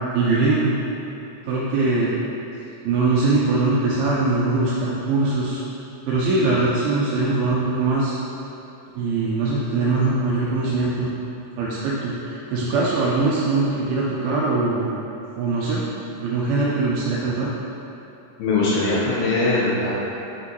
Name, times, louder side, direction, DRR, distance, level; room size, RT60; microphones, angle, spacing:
voice 1, 0.1-0.8 1.5-2.1 2.8-5.6 6.1-8.1 9.0-11.1 11.6-14.9 15.4-15.8 16.2-17.5, right 3 dB, 80° right, -6 dB, 2.2 m, -21 dB
voice 2, 18.4-19.9, left 2 dB, 75° left, -6 dB, 2.3 m, -21 dB
5.9 x 5.8 x 3.0 m, 2.9 s
omnidirectional pair, 4.9 m